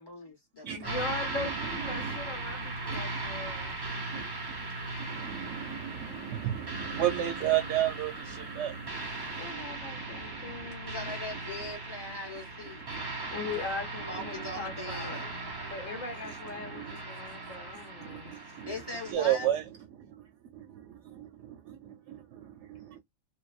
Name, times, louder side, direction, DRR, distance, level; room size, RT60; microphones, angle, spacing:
voice 1, 0.0-1.0 10.9-12.8 14.0-15.3 18.6-19.5, left 2 dB, 20° left, 0.8 m, -40 dB
voice 2, 0.7-3.8 6.0-6.2 9.4-11.1 13.3-15.3 15.6-18.3, left 4 dB, 70° left, 1.1 m, -40 dB
sound 1, 0.8-19.1, right 2 dB, 40° right, 0.3 m, -38 dB
voice 3, 1.8-2.2 4.1-4.2 5.1-10.8 12.9-13.3 16.6-17.0 17.7-18.7 19.1-19.6 19.9-20.2 20.5-23.0, right 12 dB, 65° right, 0.8 m, -34 dB
2.7 x 2.2 x 2.3 m
omnidirectional pair, 1.4 m